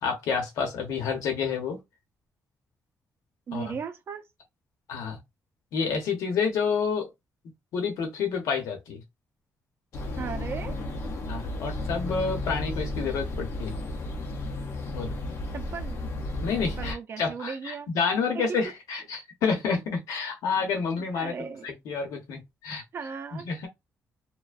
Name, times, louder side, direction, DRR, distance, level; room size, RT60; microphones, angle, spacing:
voice 1, 0.0-1.8 3.5-3.7 4.9-5.2 5.7-7.1 7.7-9.0 11.3-13.8 14.9-15.1 16.4-21.4 21.6-22.8 23.3-23.7, left 5 dB, 90° left, 0.8 m, -29 dB
voice 2, 3.5-4.2 10.2-10.8 15.5-16.0 16.6-17.9 18.3-18.6 21.1-21.7 22.9-23.5, right 6 dB, 45° right, 0.5 m, -36 dB
sound 1, 9.9-16.9, left 2 dB, 50° left, 0.6 m, -33 dB
2.5 x 2.1 x 2.3 m
cardioid pair, 145°, 6 cm